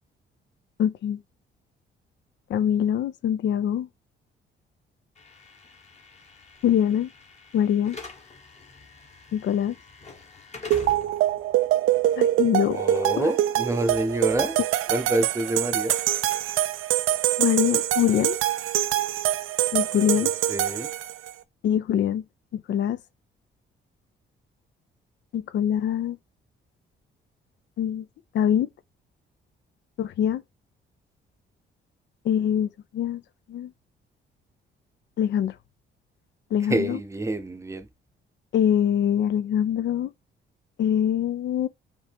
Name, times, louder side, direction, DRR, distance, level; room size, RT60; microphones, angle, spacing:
voice 1, 0.8-1.2 2.5-3.9 6.6-7.1 7.5-8.0 9.3-9.7 12.2-12.8 13.2-13.3 17.4-18.4 19.7-20.3 21.6-22.2 22.5-23.0 25.3-26.2 27.8-28.1 28.3-28.7 30.0-30.4 32.2-33.2 33.5-33.7 35.2-35.5 36.5-37.0 38.5-40.1 40.8-41.7, left 9 dB, 65° left, 0.5 m, -24 dB
Slam / Alarm, 5.2-13.2, left 3 dB, 35° left, 1.3 m, -45 dB
sound 1, 10.7-21.3, right 13 dB, 85° right, 0.4 m, -24 dB
voice 2, 12.7-14.6 14.9-16.0 20.2-20.9 36.7-37.9, right 1 dB, 15° right, 0.7 m, -27 dB
5.1 x 2.6 x 3.5 m
cardioid pair, 90°, 20 cm